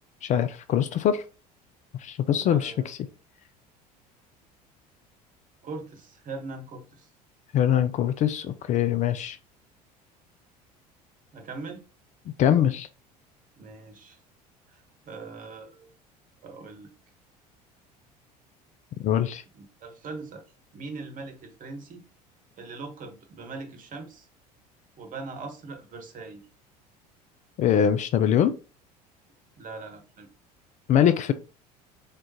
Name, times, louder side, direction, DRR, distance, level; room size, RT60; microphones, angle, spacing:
voice 1, 0.2-1.2 2.0-3.0 7.5-9.4 12.4-12.9 19.0-19.4 27.6-28.5 30.9-31.3, left 9 dB, 35° left, 0.4 m, -23 dB
voice 2, 2.4-2.9 5.6-7.1 11.3-11.8 13.6-14.2 14.7-15.9 16.4-16.9 19.5-20.4 20.7-22.0 22.6-24.3 25.0-26.5 29.6-30.3, right 3 dB, 40° right, 1.2 m, -41 dB
3.7 x 3.6 x 2.8 m
figure-of-eight pair, 65°, 21 cm